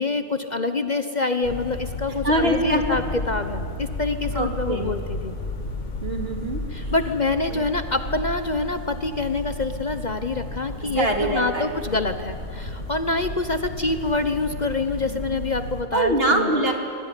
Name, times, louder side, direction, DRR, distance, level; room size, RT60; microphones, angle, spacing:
voice 1, 0.0-5.4 6.7-16.5, left 3 dB, 40° left, 9 dB, 1.1 m, -26 dB
sound 1, 1.4-15.8, left 1 dB, 75° left, 2.7 m, -33 dB
voice 2, 2.2-3.0 4.3-4.9 6.0-6.9 7.5-7.6 10.8-11.7 15.9-16.7, right 1 dB, 50° right, 3 dB, 3.1 m, -24 dB
25.0 x 23.0 x 9.9 m, 2.5 s
omnidirectional pair, 1.3 m